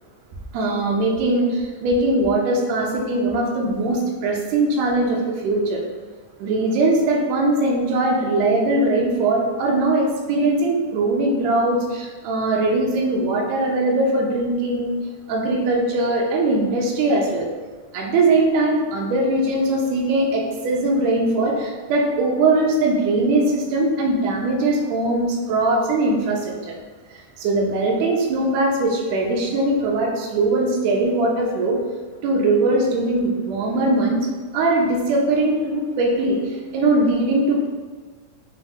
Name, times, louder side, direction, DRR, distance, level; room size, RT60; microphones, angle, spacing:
voice 1, 0.5-5.8 6.4-15.0 15.3-17.5 17.9-26.8 27.1-31.8 32.2-37.7, right 2 dB, 85° right, -1 dB, 1.5 m, -21 dB
5.4 x 2.0 x 3.5 m, 1.4 s
omnidirectional pair, 3.8 m